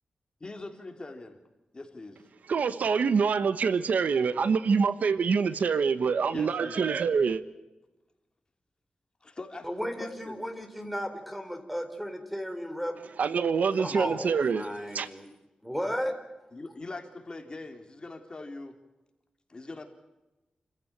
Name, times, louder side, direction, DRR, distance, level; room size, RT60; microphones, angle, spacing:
voice 1, 0.4-1.4 1.7-2.2 6.3-6.9 9.2-10.4 16.5-18.7 19.5-19.8, left 2 dB, 35° left, 3.3 m, -42 dB
voice 2, 2.5-7.4 13.2-14.7 14.9-15.1, right 5 dB, 80° right, 1.1 m, -25 dB
voice 3, 9.6-13.1 13.8-15.3 15.6-16.2, equal, ahead, 4.0 m, -34 dB
29.5 x 15.0 x 8.9 m
wide cardioid pair, 95°, 3 cm